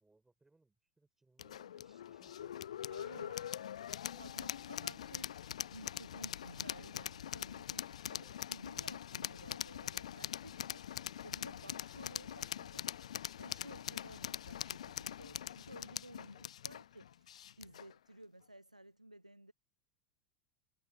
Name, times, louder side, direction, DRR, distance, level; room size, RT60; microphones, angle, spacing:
voice 1, 0.0-2.6 3.0-5.3 8.0-8.3 16.3-16.4, right 2 dB, 10° right, 5.0 m, -71 dB
sound 1, 1.4-17.9, left 10 dB, 65° left, 0.5 m, -43 dB
voice 2, 2.9-3.4 4.2-5.3 5.7-12.9 13.4-19.5, right 1 dB, 90° right, 0.6 m, -55 dB
sound 2, 6.5-7.2 7.6-8.5, left 5 dB, 15° left, 5.6 m, -72 dB
figure-of-eight pair, 85°, 4 cm